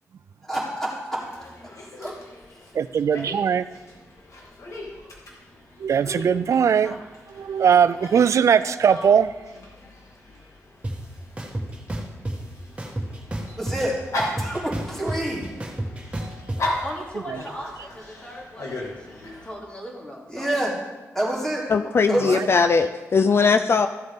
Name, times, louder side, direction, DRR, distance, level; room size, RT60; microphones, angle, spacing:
voice 1, 0.4-1.3 2.0-2.2 13.6-14.0 14.3-15.5 20.3-20.7 21.1-21.7 22.1-22.4, right 1 dB, 5° left, -6 dB, 3.5 m, -27 dB
Dog, 1.2-19.5, left 1 dB, 70° left, 2.0 m, -37 dB
voice 2, 2.7-3.7 5.8-7.0 7.3-9.3 17.3-17.4 22.3-22.5, right 7 dB, 65° right, 15 dB, 0.4 m, -20 dB
sound 1, 10.8-10.9 11.4-12.3 12.8-13.9 14.2-16.6, right 1 dB, 20° right, 1.6 m, -29 dB
voice 3, 16.8-20.6, equal, 20° left, -3 dB, 2.8 m, -38 dB
voice 4, 21.7-23.9, left 5 dB, 45° left, 9 dB, 0.4 m, -19 dB
14.0 x 7.7 x 3.7 m, 1.2 s
wide cardioid pair, 105°, 6 cm